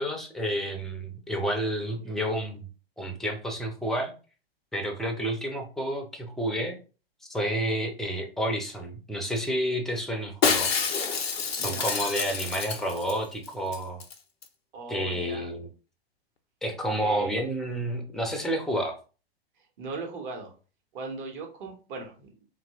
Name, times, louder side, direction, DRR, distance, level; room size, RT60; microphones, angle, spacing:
voice 1, 0.0-2.6 3.0-4.1 4.7-6.8 7.3-10.7 11.0-11.3 11.5-14.0 14.9-15.7 16.6-19.0, equal, ahead, 3 dB, 0.5 m, -30 dB
Shatter, 10.4-13.2 13.5-13.6 13.7-14.1 14.4-14.5, left 6 dB, 90° left, 0.5 m, -28 dB
voice 2, 11.6-11.9 14.7-15.5 17.0-17.4 19.6-20.5 20.9-22.3, right 4 dB, 50° right, 2 dB, 1.2 m, -39 dB
2.8 x 2.6 x 2.8 m, 0.35 s
hypercardioid pair, 105°, 30 cm